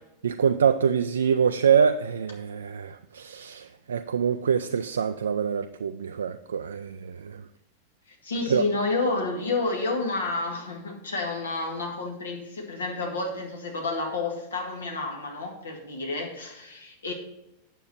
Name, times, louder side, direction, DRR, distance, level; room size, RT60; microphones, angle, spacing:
voice 1, 0.2-7.5 8.5-8.6, right 7 dB, 70° right, 0.3 m, -25 dB
voice 2, 8.1-17.1, left 3 dB, 70° left, 1.9 m, -30 dB
8.9 x 7.0 x 4.4 m
figure-of-eight pair, 90°, 0 cm